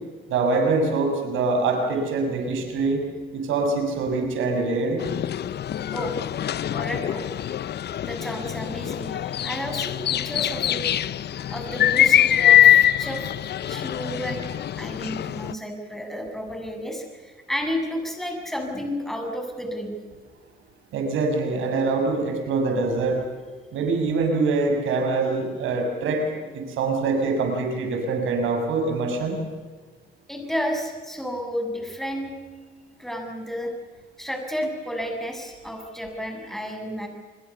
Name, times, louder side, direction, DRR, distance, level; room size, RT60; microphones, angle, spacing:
voice 1, 0.3-3.0 3.3-5.0 20.9-23.2 23.7-26.3 26.5-29.4, right 3 dB, 85° right, 4 dB, 6.6 m, -24 dB
sound 1, 5.0-15.5, left 11 dB, 55° left, 0.7 m, -23 dB
voice 2, 6.7-7.3 8.0-10.8 11.5-14.4 14.8-20.0 30.3-32.3 33.0-33.7 34.2-37.1, equal, ahead, 3 dB, 7.2 m, -32 dB
29.0 x 22.0 x 7.1 m, 1.4 s
cardioid pair, 90°, 20 cm